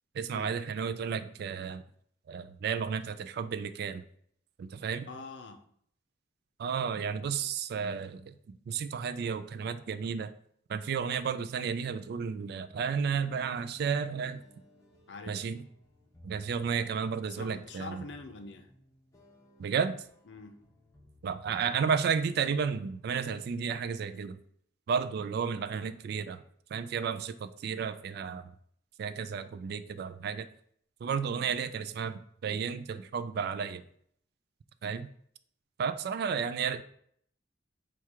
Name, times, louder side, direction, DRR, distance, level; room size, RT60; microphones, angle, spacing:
voice 1, 0.1-1.8 2.3-4.0 4.6-5.1 6.6-10.3 10.7-14.4 15.3-15.6 16.2-18.0 19.6-20.0 21.2-24.4 24.9-26.4 26.7-28.5 29.0-30.5 31.0-33.8 34.8-35.1 35.8-36.8, right 6 dB, 60° right, 12 dB, 0.3 m, -32 dB
voice 2, 5.1-5.6 15.1-15.5 17.2-18.7 20.3-20.6 31.3-31.5, left 3 dB, 70° left, 6 dB, 0.6 m, -45 dB
sound 1, 13.7-23.2, left 1 dB, 20° left, 0.8 m, -60 dB
4.4 x 2.3 x 4.7 m, 0.64 s
head